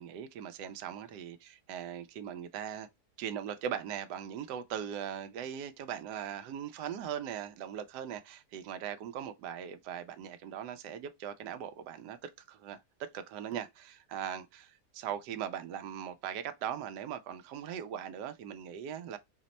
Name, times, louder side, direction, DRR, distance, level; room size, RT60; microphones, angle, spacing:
voice 1, 0.0-2.9 3.2-19.2, right 9 dB, 90° right, 1.2 m, -40 dB
4.2 x 2.1 x 4.0 m
omnidirectional pair, 1.7 m